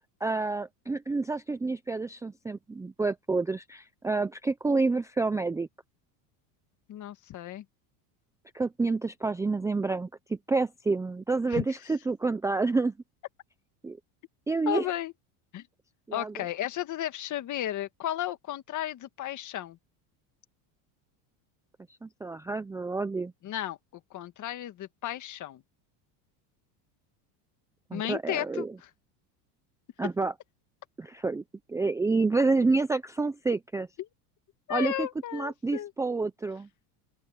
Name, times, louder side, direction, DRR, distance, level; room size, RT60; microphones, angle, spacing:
voice 1, 0.2-5.7 8.5-12.9 13.8-14.0 14.5-14.9 16.1-16.3 22.0-23.3 27.9-28.8 30.0-30.3 31.0-31.4 31.7-33.9 34.7-35.1 35.3-36.7, right 3 dB, 5° right, 0.5 m, -28 dB
voice 2, 6.9-7.6 11.5-11.6 14.7-15.1 15.5-15.6 16.1-19.8 23.4-23.8 24.1-25.6 27.9-28.7 34.7-35.9, left 12 dB, 40° left, 1.8 m, -33 dB
open air
supercardioid pair, 130°, 46 cm